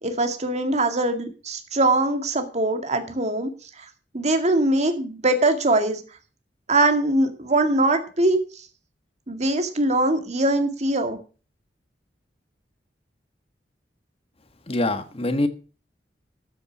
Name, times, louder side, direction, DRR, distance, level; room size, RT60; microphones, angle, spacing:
voice 1, 0.0-3.9 4.1-6.0 6.7-8.6 9.3-11.2, right 2 dB, 40° right, 6 dB, 2.1 m, -22 dB
voice 2, 14.7-15.5, left 2 dB, 35° left, 9 dB, 1.4 m, -24 dB
13.0 x 7.0 x 6.0 m, 0.37 s
head